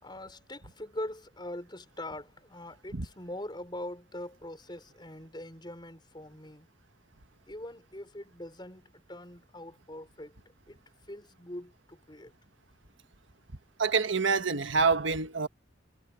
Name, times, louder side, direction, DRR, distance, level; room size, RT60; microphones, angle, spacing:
voice 1, 0.0-6.7 7.5-10.3 10.7-10.8 11.1-12.3, left 1 dB, 25° left, 5.0 m, -42 dB
voice 2, 13.8-15.5, right 5 dB, 80° right, 1.5 m, -26 dB
head